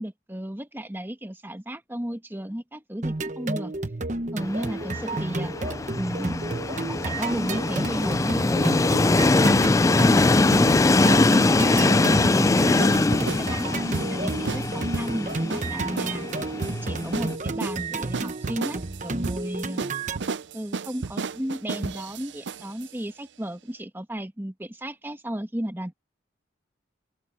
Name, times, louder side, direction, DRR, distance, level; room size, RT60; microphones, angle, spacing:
voice 1, 0.0-3.7 4.3-5.5 6.0-6.5 6.9-8.9 9.3-12.9 13.3-16.3 16.8-19.8 20.5-25.9, equal, 10° right, 1.4 m, -33 dB
sound 1, 3.0-20.2, right 2 dB, 40° right, 1.0 m, -31 dB
Train, 4.4-17.4, left 2 dB, 15° left, 0.3 m, -22 dB
sound 2, 11.9-22.9, right 4 dB, 75° right, 0.6 m, -34 dB
open air
head